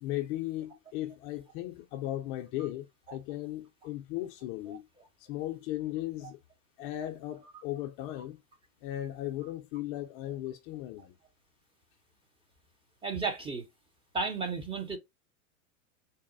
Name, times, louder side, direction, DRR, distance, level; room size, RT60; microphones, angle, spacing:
voice 1, 0.0-4.8 5.2-6.4 6.8-8.4 8.8-11.2, left 14 dB, 40° left, 0.5 m, -37 dB
voice 2, 13.0-13.6 14.1-15.0, right 4 dB, 15° right, 0.6 m, -33 dB
4.0 x 2.1 x 3.7 m
hypercardioid pair, 120°, 42 cm